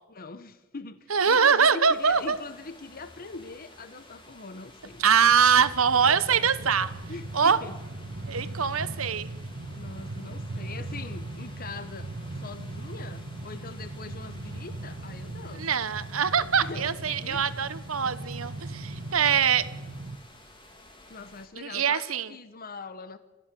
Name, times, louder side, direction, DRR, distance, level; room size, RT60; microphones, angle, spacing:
voice 1, 0.1-5.0 7.1-7.8 9.7-15.7 16.6-17.5 21.1-23.2, left 3 dB, 45° left, 12 dB, 1.0 m, -42 dB
voice 2, 1.1-2.4 5.0-6.9 7.3-7.6 8.3-9.3 15.6-19.7 21.6-22.3, right 6 dB, 85° right, 13 dB, 1.2 m, -23 dB
sound 1, 1.9-21.5, left 1 dB, 25° left, 2.9 m, -52 dB
Train, 5.0-20.2, right 2 dB, 65° right, 1.3 m, -39 dB
28.5 x 14.5 x 7.6 m, 1.2 s
head